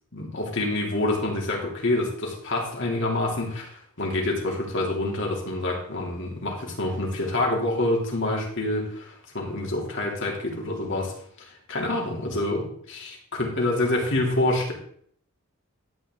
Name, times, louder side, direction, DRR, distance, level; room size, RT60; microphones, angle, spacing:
voice 1, 0.1-14.7, left 2 dB, 60° left, 0 dB, 2.9 m, -27 dB
12.5 x 9.0 x 3.8 m, 0.62 s
head